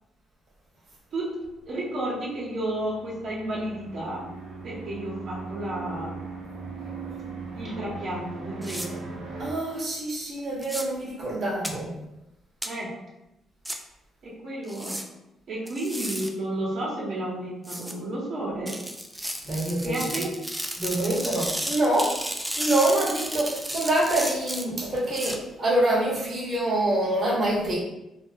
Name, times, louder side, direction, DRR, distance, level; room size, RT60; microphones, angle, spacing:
voice 1, 1.7-4.2 4.6-6.3 7.6-9.0 12.6-12.9 14.2-15.0 15.5-18.7 19.8-20.3, right 1 dB, 65° right, -6 dB, 1.0 m, -32 dB
sound 1, 2.2-9.5, right 3 dB, 90° right, 0.6 m, -39 dB
sound 2, 8.6-8.9 10.6-10.8 11.6-11.7 12.6-12.7 13.6-13.8 14.7-15.0 15.7-16.3 17.6-17.9 18.7-25.4, right 1 dB, 5° right, 0.3 m, -33 dB
voice 2, 9.4-11.9 19.4-20.0 20.8-22.2 22.6-27.8, right 1 dB, 40° right, -6 dB, 1.0 m, -25 dB
2.4 x 2.1 x 3.4 m, 0.90 s
cardioid pair, 90°, 0 cm